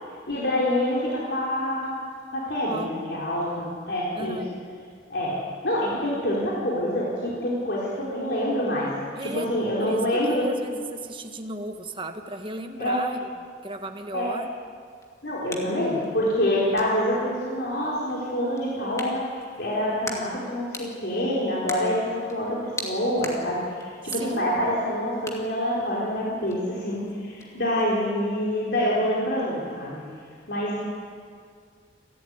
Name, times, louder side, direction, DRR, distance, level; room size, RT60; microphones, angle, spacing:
voice 1, 0.3-2.0 2.3-4.4 5.1-5.4 5.6-8.9 9.2-10.4 12.8-13.0 14.1-14.3 15.2-30.0 30.5-30.8, left 1 dB, 65° left, -6 dB, 4.3 m, -26 dB
voice 2, 2.7-3.1 4.1-4.6 9.2-9.5 9.8-13.3 13.6-14.5 24.0-24.5, right 2 dB, 30° right, 5 dB, 1.5 m, -35 dB
sound 1, 14.8-28.1, left 2 dB, 15° left, 2.6 m, -43 dB
29.5 x 13.5 x 9.7 m, 2.2 s
head